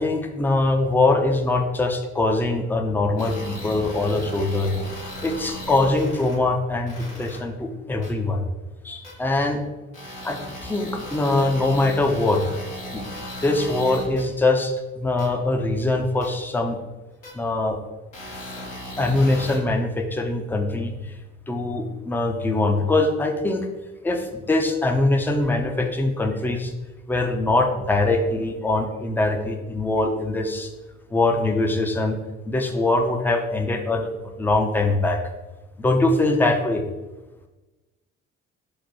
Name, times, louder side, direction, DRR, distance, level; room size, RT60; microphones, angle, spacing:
voice 1, 0.0-4.7 5.2-8.4 8.8-9.6 10.2-12.4 12.9-13.0 13.4-16.8 17.3-17.8 19.0-21.1 21.5-23.7 24.0-26.7 27.1-30.7 31.1-32.2 32.5-34.1 34.4-35.2 35.8-36.8, left 2 dB, 5° left, 4 dB, 0.4 m, -22 dB
sound 1, 3.2-6.3 6.9-7.4 8.0-8.1 9.0-9.1 9.9-14.2 15.2-15.3 16.2-16.3 17.2-17.3 18.1-19.6, left 1 dB, 80° left, 1.2 m, -36 dB
4.7 x 2.1 x 4.1 m, 1.1 s
figure-of-eight pair, 45°, 39 cm